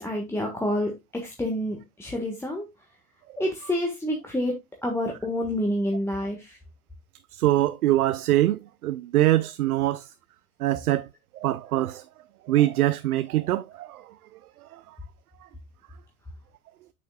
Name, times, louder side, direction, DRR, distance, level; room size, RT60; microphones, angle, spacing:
voice 1, 0.0-2.7 3.4-6.6, left 1 dB, 5° left, 1.4 m, -28 dB
voice 2, 7.3-10.1 10.6-11.1 11.4-12.0 12.5-14.0, right 14 dB, 75° right, 0.6 m, -23 dB
8.5 x 6.2 x 2.3 m
hypercardioid pair, 95°, 45 cm